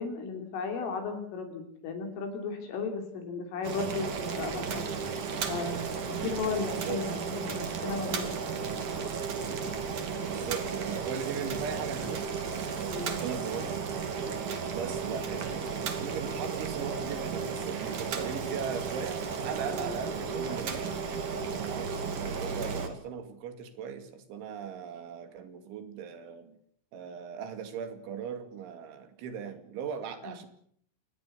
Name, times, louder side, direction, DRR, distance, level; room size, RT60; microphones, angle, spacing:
voice 1, 0.0-4.9 5.5-8.4 12.9-13.2 19.7-20.0 30.2-30.4, left 5 dB, 75° left, 5 dB, 5.9 m, -35 dB
Boiling, 3.6-22.9, right 5 dB, 45° right, 3.5 m, -34 dB
voice 2, 6.6-7.0 10.2-12.3 12.7-13.8 14.7-21.0 21.5-26.6 26.9-30.5, right 7 dB, 70° right, 8 dB, 4.7 m, -39 dB
27.5 x 20.5 x 7.0 m, 0.66 s
omnidirectional pair, 5.9 m